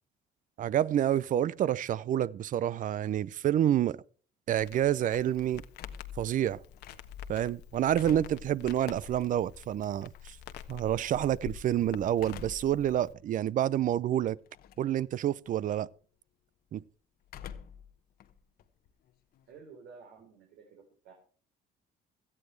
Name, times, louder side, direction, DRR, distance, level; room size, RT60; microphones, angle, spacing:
voice 1, 0.6-4.0 4.5-5.6 6.2-6.6 7.3-10.4 10.7-14.4 14.8-15.9 16.7-16.8, right 11 dB, 50° right, 0.6 m, -28 dB
Crackle, 4.5-13.1, left 9 dB, 80° left, 1.3 m, -47 dB
sound 1, 5.7-7.3 7.7-10.3 12.1-12.8 13.3-13.4 14.5-14.9 15.2-15.7 17.2-17.9 18.2-19.6, left 8 dB, 65° left, 1.1 m, -48 dB
voice 2, 19.5-21.1, right 5 dB, 80° right, 3.7 m, -52 dB
17.5 x 13.5 x 3.3 m
cardioid pair, 110°, 17 cm